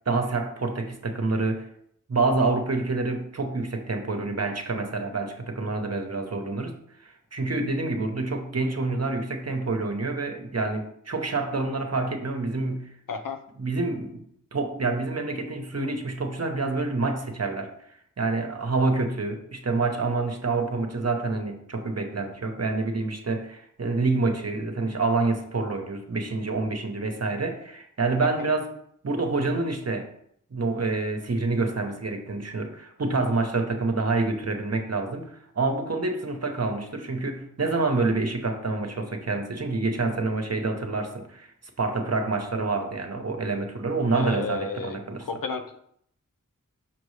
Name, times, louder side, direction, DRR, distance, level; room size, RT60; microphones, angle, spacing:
voice 1, 0.1-1.7 2.1-6.8 7.0-12.9 13.6-14.2 14.5-17.7 18.2-28.7 29.0-30.1 30.5-35.3 35.5-41.5 41.8-45.2, right 3 dB, 50° right, 5 dB, 1.0 m, -27 dB
voice 2, 13.1-13.4 28.4-28.5 44.1-45.8, left 5 dB, 85° left, 5 dB, 0.7 m, -33 dB
5.9 x 5.2 x 3.2 m, 0.68 s
wide cardioid pair, 45°, 33 cm